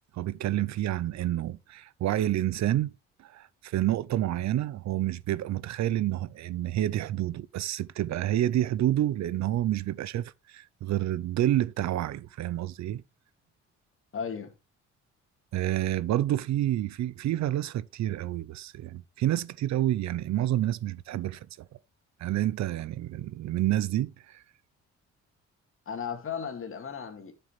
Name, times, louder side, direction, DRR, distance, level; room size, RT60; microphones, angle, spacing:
voice 1, 0.1-2.9 3.2-13.0 15.5-21.7 22.2-24.4, right 13 dB, 65° right, 0.6 m, -29 dB
voice 2, 14.1-14.5 25.9-27.3, left 7 dB, 45° left, 2.3 m, -35 dB
11.0 x 6.8 x 3.2 m
cardioid pair, 90°, 30 cm